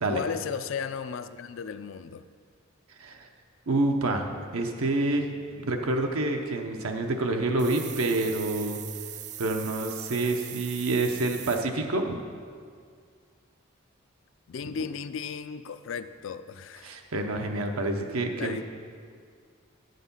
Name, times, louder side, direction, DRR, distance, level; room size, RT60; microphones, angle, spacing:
voice 1, 0.1-2.3 14.5-17.0 18.4-18.6, left 6 dB, 65° left, 12 dB, 0.4 m, -35 dB
voice 2, 3.7-5.3 5.6-8.8 9.4-12.2 16.8-18.6, right 2 dB, 90° right, 3 dB, 0.8 m, -27 dB
sound 1, 7.6-11.6, right 11 dB, 35° right, 0.3 m, -40 dB
9.7 x 6.6 x 5.4 m, 2.1 s
head